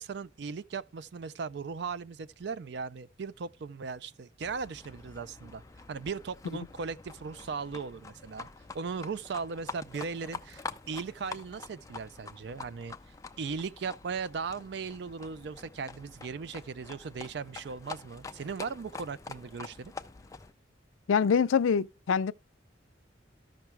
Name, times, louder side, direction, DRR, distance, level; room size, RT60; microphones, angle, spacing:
voice 1, 0.0-5.6 5.9-8.5 8.7-12.9 13.4-19.9, right 5 dB, 60° right, 0.4 m, -38 dB
Livestock farm animals working animals, 4.4-20.5, left 4 dB, 15° left, 0.4 m, -46 dB
voice 2, 21.1-22.3, left 6 dB, 85° left, 0.4 m, -25 dB
13.5 x 5.9 x 3.2 m
head